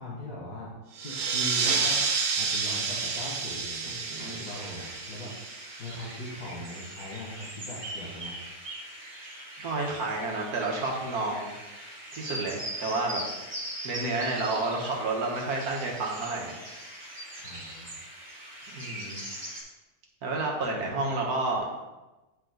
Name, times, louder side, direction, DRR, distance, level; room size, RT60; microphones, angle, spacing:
voice 1, 0.0-3.9 4.2-5.3 5.8-8.4 17.4-17.9, left 1 dB, 65° left, -6 dB, 2.2 m, -40 dB
sound 1, 0.9-6.1, right 5 dB, 55° right, 0.8 m, -30 dB
sound 2, 1.2-19.6, right 1 dB, 30° right, 2.1 m, -41 dB
voice 2, 3.9-4.4 9.6-11.5 12.1-13.2 13.8-16.6 18.7-19.2 20.2-21.7, right 2 dB, 70° right, -1 dB, 1.7 m, -30 dB
9.7 x 3.7 x 3.8 m, 1.1 s
omnidirectional pair, 1.6 m